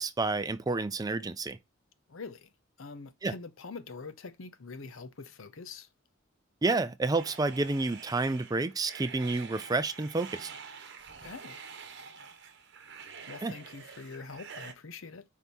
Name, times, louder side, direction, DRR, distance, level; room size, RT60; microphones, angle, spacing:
voice 1, 0.0-1.6 3.2-3.3 6.6-10.5 13.4-13.5, right 3 dB, 20° right, 0.4 m, -29 dB
voice 2, 2.1-2.5 2.8-5.9 11.2-11.6 13.3-15.2, left 4 dB, 75° left, 0.8 m, -44 dB
sound 1, 7.2-14.7, right 6 dB, 55° right, 1.0 m, -47 dB
4.7 x 4.2 x 5.3 m
head